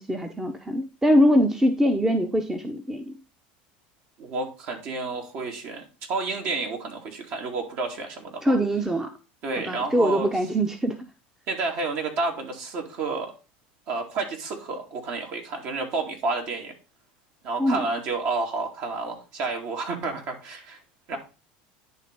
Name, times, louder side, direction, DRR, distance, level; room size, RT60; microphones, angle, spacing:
voice 1, 0.0-3.1 8.4-9.1 9.7-11.1 17.6-17.8, equal, 10° right, 6 dB, 0.9 m, -23 dB
voice 2, 4.2-8.6 9.4-10.3 11.5-13.3 13.9-16.7 17.4-20.8 21.1-21.2, right 3 dB, 60° right, 2 dB, 2.7 m, -30 dB
10.0 x 3.4 x 5.3 m, 0.31 s
hypercardioid pair, 95°, 5 cm